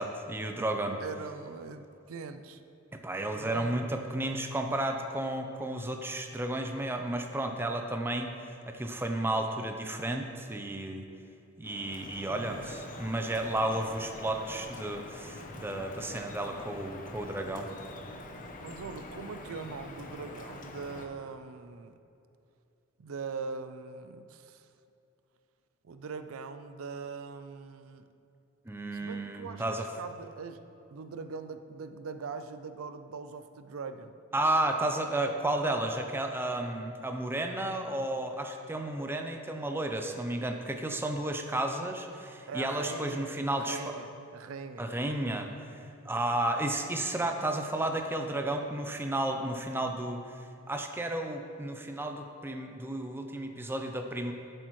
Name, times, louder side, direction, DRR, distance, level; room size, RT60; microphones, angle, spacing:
voice 1, 0.0-1.0 2.9-8.3 8.7-11.0 11.6-17.7 28.7-29.9 34.3-44.0 44.8-45.5 46.0-50.2 50.7-54.3, right 1 dB, 10° right, 4 dB, 0.5 m, -32 dB
voice 2, 1.0-2.6 3.3-4.2 12.3-12.7 18.6-21.9 23.0-24.7 25.8-28.0 29.0-30.6 30.9-34.2 42.5-44.9, right 5 dB, 85° right, 10 dB, 0.5 m, -42 dB
Drip, 11.6-21.1, left 2 dB, 40° left, 0.7 m, -45 dB
12.0 x 7.8 x 3.1 m, 2.6 s
head